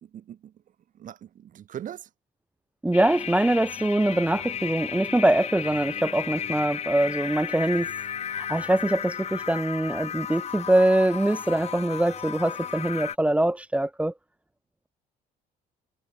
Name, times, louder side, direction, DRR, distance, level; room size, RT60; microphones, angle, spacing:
voice 1, 0.0-0.5 0.9-2.1, right 10 dB, 50° right, 1.4 m, -40 dB
voice 2, 2.8-7.9 8.4-14.1, right 1 dB, 10° right, 0.5 m, -23 dB
sound 1, 2.9-13.2, left 8 dB, 40° left, 0.8 m, -34 dB
cardioid pair, 110°, 17 cm